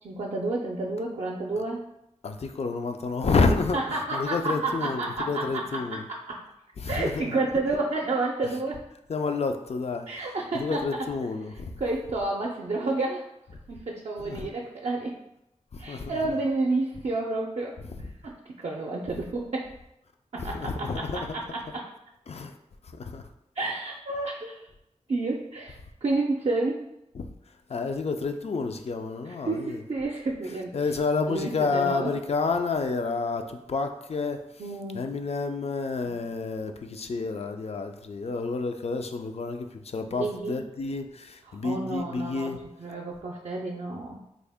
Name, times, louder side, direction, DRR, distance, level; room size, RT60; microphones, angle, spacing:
voice 1, 0.0-1.8 3.7-6.4 6.9-8.8 10.1-10.8 11.8-13.3 13.7-15.2 15.8-17.8 18.2-19.7 20.3-20.9 21.5-21.8 23.6-24.7 25.1-26.9 29.4-30.7 31.3-32.1 34.6-35.0 40.2-40.6 41.5-42.5 42.8-44.2, right 2 dB, 60° right, -2 dB, 0.4 m, -30 dB
voice 2, 2.2-6.0 6.8-7.4 8.4-8.5 9.1-11.8 14.2-14.5 15.7-16.2 17.9-18.0 20.4-21.4 22.3-22.6 22.8-23.3 27.1-29.8 30.7-34.6 34.9-42.6, left 4 dB, 60° left, 6 dB, 0.4 m, -30 dB
3.6 x 2.1 x 3.4 m, 0.83 s
cardioid pair, 45°, 12 cm